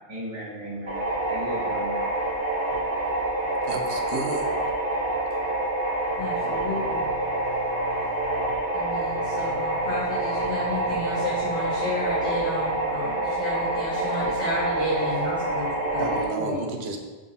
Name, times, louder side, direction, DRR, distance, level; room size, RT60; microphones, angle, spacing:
voice 1, 0.1-2.1, right 1 dB, 25° right, -9 dB, 1.4 m, -36 dB
sound 1, 0.9-16.2, right 1 dB, 55° right, 1.7 m, -27 dB
voice 2, 3.6-4.5 14.0-14.1 16.0-17.0, right 3 dB, 70° right, 3 dB, 1.1 m, -32 dB
voice 3, 6.2-8.5 8.7-16.7, left 1 dB, 85° left, -10 dB, 2.0 m, -32 dB
6.1 x 5.8 x 4.1 m, 1.3 s
omnidirectional pair, 1.1 m